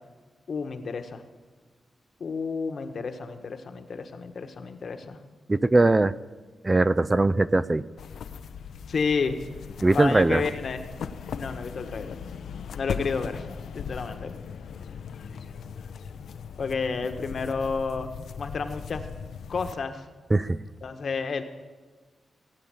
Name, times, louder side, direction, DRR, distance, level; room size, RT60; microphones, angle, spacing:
voice 1, 0.5-1.2 2.2-5.2 8.9-9.4 9.9-10.8 11.3-12.2 12.7-13.4 13.7-14.3 15.3-15.4 16.6-18.1 18.4-19.1 19.5-20.1 20.8-21.4, left 5 dB, 60° left, 7 dB, 1.3 m, -30 dB
voice 2, 5.5-6.1 6.6-7.8 9.8-10.4 20.3-20.6, right 2 dB, 25° right, 14 dB, 0.4 m, -20 dB
sound 1, 8.0-19.7, left 6 dB, 85° left, 0.7 m, -38 dB
17.5 x 8.6 x 8.9 m, 1.4 s
cardioid pair, 90°, 0 cm